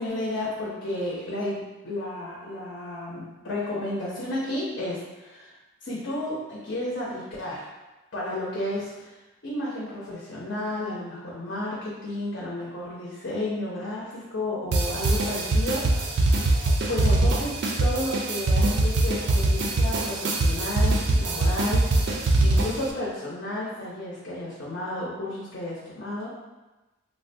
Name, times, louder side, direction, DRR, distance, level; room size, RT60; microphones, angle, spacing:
voice 1, 0.0-1.6 1.8-5.5 5.8-7.7 8.1-9.1 9.4-16.1 16.9-22.1 22.4-26.3, left 1 dB, 55° left, -6 dB, 0.6 m, -32 dB
sound 1, 14.7-22.9, right 2 dB, 55° right, 0.4 m, -23 dB
3.5 x 2.1 x 2.6 m, 1.1 s
head